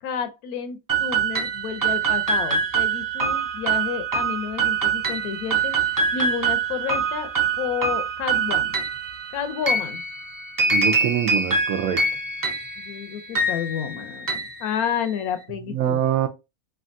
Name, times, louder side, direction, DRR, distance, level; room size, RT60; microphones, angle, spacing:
voice 1, 0.0-5.7 6.1-7.3 7.6-8.8 9.3-10.0 12.8-16.0, left 7 dB, 85° left, 1.1 m, -30 dB
sound 1, 0.9-15.3, right 4 dB, 30° right, 0.4 m, -25 dB
voice 2, 10.7-12.0 15.7-16.3, right 10 dB, 75° right, 1.0 m, -24 dB
3.4 x 2.3 x 2.5 m
omnidirectional pair, 1.5 m